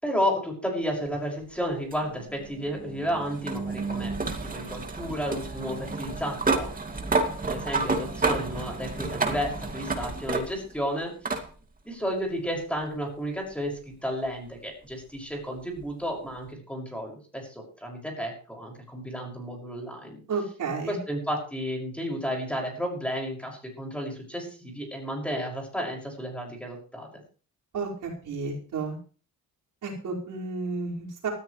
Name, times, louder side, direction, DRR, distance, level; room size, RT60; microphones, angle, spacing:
voice 1, 0.0-6.7 7.5-11.4 11.8-20.2 20.9-27.1, equal, 5° left, 0 dB, 6.1 m, -32 dB
sound 1, 1.9-10.8 11.3-11.5 12.8-12.9 15.8-15.9, right 3 dB, 25° right, 2.4 m, -30 dB
voice 2, 20.3-21.0 27.7-29.0 29.8-31.3, right 4 dB, 60° right, -2 dB, 5.3 m, -32 dB
19.0 x 14.0 x 3.3 m, 0.39 s
cardioid pair, 125°, 36 cm